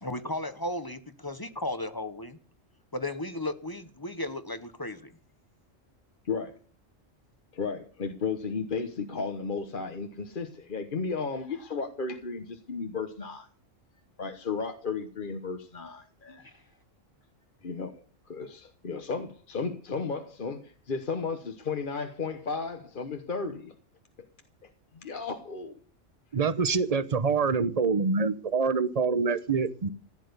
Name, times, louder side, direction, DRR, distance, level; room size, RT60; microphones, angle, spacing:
voice 1, 0.0-2.4 2.9-5.1 16.4-16.5, left 1 dB, 20° left, 1.0 m, -35 dB
voice 2, 7.5-13.5 14.2-16.4 17.6-23.7 24.2-24.3 24.6-25.8, left 5 dB, 45° left, 1.2 m, -34 dB
voice 3, 26.3-29.9, right 5 dB, 35° right, 0.8 m, -26 dB
15.5 x 10.0 x 6.8 m
omnidirectional pair, 1.3 m